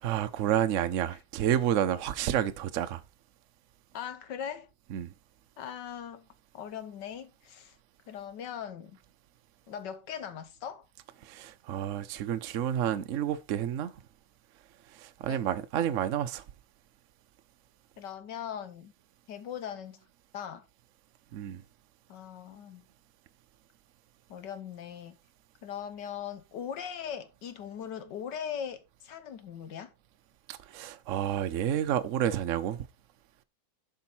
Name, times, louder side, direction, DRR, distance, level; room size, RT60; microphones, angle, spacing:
voice 1, 0.0-3.0 4.9-5.1 11.3-13.9 15.0-16.4 21.3-21.6 30.5-32.8, right 10 dB, 60° right, 0.8 m, -30 dB
voice 2, 3.9-4.7 5.6-6.3 6.5-7.8 8.1-9.0 9.7-10.9 15.3-15.4 18.0-18.9 19.3-20.0 20.3-20.6 22.1-22.8 24.3-25.2 25.6-29.9, left 8 dB, 65° left, 1.4 m, -40 dB
11.0 x 5.3 x 4.4 m
omnidirectional pair, 2.2 m